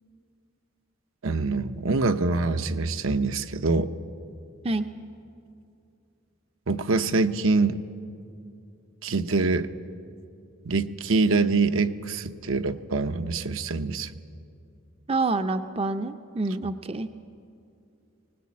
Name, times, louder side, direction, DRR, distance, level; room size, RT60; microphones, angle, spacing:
voice 1, 1.2-3.9 6.7-7.8 9.0-9.7 10.7-14.2, right 3 dB, 75° right, 8 dB, 0.8 m, -25 dB
voice 2, 15.1-17.1, right 3 dB, 30° right, 9 dB, 0.5 m, -27 dB
20.0 x 19.0 x 8.5 m, 2.6 s
head